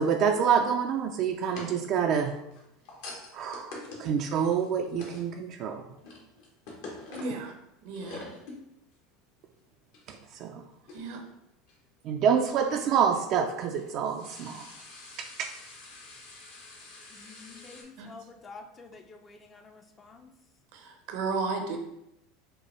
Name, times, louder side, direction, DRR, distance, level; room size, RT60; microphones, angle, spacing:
voice 1, 0.0-2.4 3.3-5.8 10.1-10.6 12.0-14.6 15.2-15.5, right 7 dB, 55° right, 3 dB, 0.3 m, -27 dB
sound 1, 1.4-5.4 5.8-7.5 7.9-8.6 8.9-9.0 9.9-10.1 10.9-11.3 11.7-11.8 13.4-17.8, left 2 dB, 70° left, 1.0 m, -46 dB
voice 2, 7.1-7.5 7.8-8.3 10.9-11.2 18.0-18.1 20.7-21.8, right 4 dB, 70° right, 4 dB, 0.7 m, -33 dB
voice 3, 17.1-20.3, left 4 dB, 30° left, 5 dB, 0.4 m, -49 dB
4.4 x 2.2 x 3.1 m, 0.84 s
hypercardioid pair, 100°, 0 cm